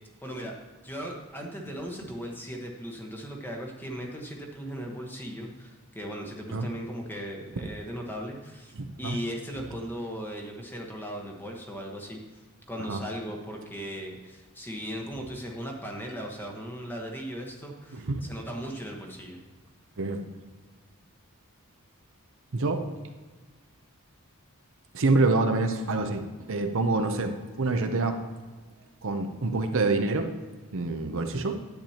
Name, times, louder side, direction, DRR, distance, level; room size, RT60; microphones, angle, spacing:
voice 1, 0.2-0.6 0.8-19.4, equal, 10° left, 0 dB, 1.2 m, -38 dB
voice 2, 8.7-9.2 12.8-13.0 17.9-18.3 20.0-20.2 22.5-22.8 24.9-28.2 29.0-30.3 30.7-31.6, right 3 dB, 60° right, 6 dB, 0.8 m, -26 dB
10.5 x 8.8 x 2.9 m, 1.3 s
head